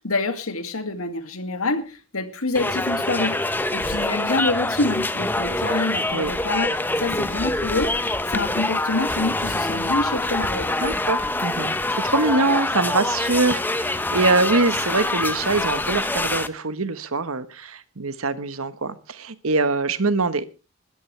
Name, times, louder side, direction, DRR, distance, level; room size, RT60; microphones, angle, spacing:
voice 1, 0.0-10.8, left 2 dB, 80° left, 8 dB, 2.3 m, -27 dB
sound 1, 2.5-16.5, left 2 dB, 10° left, 0.7 m, -25 dB
voice 2, 10.8-20.4, right 3 dB, 80° right, 13 dB, 1.3 m, -23 dB
20.5 x 13.5 x 3.3 m, 0.32 s
head